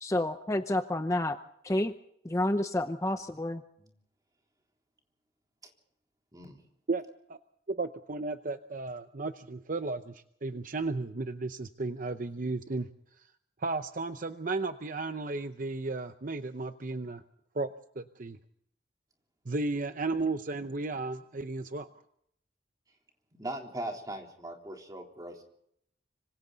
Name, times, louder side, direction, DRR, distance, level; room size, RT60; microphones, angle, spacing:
voice 1, 0.0-1.4 1.6-1.9 2.2-3.6, left 1 dB, 15° left, 8 dB, 0.7 m, -29 dB
voice 2, 7.7-12.9 13.6-17.2 17.5-17.7 18.0-18.4 19.5-21.9, right 3 dB, 45° right, 9 dB, 0.7 m, -34 dB
voice 3, 23.4-25.4, right 1 dB, 20° right, 1 dB, 3.6 m, -39 dB
25.5 x 25.5 x 4.0 m, 0.70 s
head